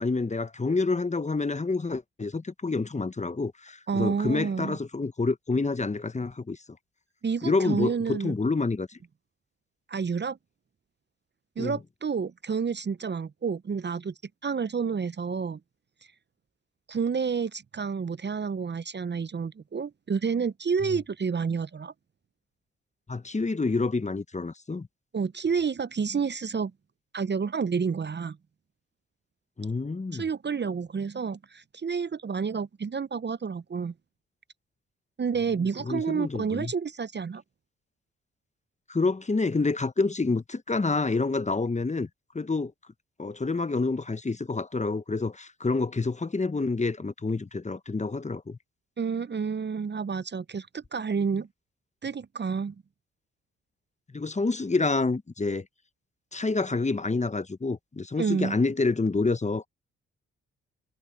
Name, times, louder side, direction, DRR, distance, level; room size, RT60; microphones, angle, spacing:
voice 1, 0.0-6.6 7.4-9.0 11.6-11.8 23.1-24.9 29.6-30.2 35.8-36.7 38.9-42.1 42.3-42.7 43.2-48.6 54.1-55.6 56.3-59.7, left 3 dB, 25° left, 1.1 m, -28 dB
voice 2, 3.9-4.8 7.2-8.4 9.9-10.4 11.6-14.1 14.4-15.6 16.9-21.9 25.1-26.7 27.1-28.4 30.1-33.9 35.2-37.4 49.0-51.5 52.0-52.7 58.2-58.5, right 6 dB, 35° right, 0.8 m, -29 dB
hypercardioid pair, 45°, 30 cm